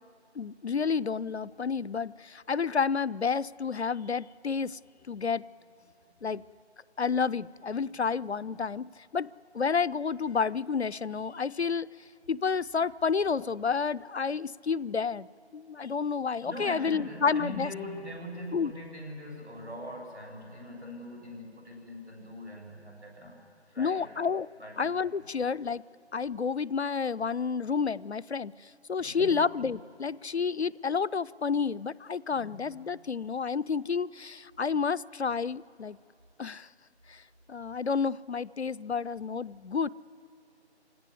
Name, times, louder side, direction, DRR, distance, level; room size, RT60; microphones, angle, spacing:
voice 1, 0.4-4.8 5.1-5.4 6.2-6.4 7.0-9.3 9.5-11.9 12.3-15.3 15.5-17.7 18.5-18.7 23.8-24.5 24.8-25.8 26.1-36.0 36.4-36.7 37.1-37.2 37.5-39.9, left 5 dB, 70° left, 21 dB, 0.5 m, -30 dB
voice 2, 16.4-24.1 24.6-24.9 29.0-29.4 32.3-32.6, left 1 dB, 80° right, 0 dB, 7.4 m, -42 dB
26.0 x 17.0 x 9.6 m, 2.5 s
figure-of-eight pair, 180°, 34 cm